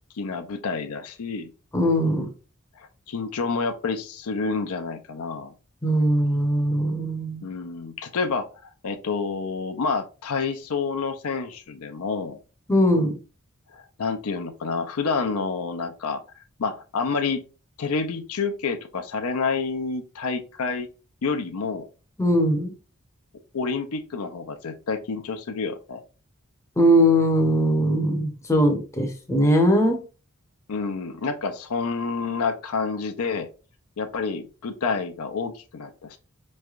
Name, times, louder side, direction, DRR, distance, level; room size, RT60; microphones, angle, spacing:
voice 1, 0.1-1.5 2.8-5.5 7.4-12.4 13.7-16.2 16.6-17.4 17.8-20.9 21.2-21.9 23.5-26.0 30.7-33.5 34.0-36.2, left 4 dB, 80° left, 6 dB, 0.5 m, -28 dB
voice 2, 1.7-2.3 5.8-7.4 12.7-13.1 22.2-22.7 26.8-30.0, equal, 15° left, 3 dB, 0.7 m, -20 dB
4.4 x 3.2 x 2.4 m, 0.33 s
head